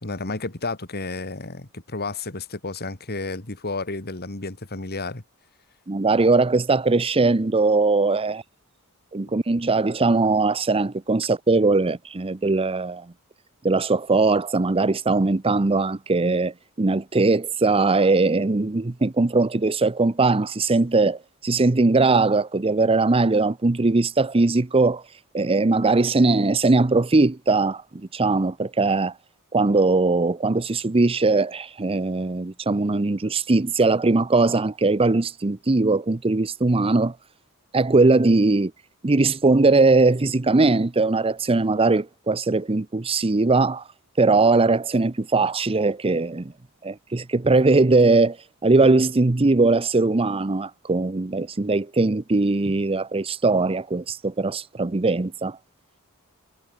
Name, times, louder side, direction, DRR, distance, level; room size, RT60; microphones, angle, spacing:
voice 1, 0.0-5.2, left 3 dB, 45° left, 2.6 m, -31 dB
voice 2, 5.9-8.4 9.1-13.1 13.6-25.0 25.3-27.8 28.1-29.1 29.5-37.1 37.7-38.7 39.0-43.8 44.2-46.5 46.8-48.4 48.6-55.6, right 3 dB, 25° right, 0.6 m, -20 dB
head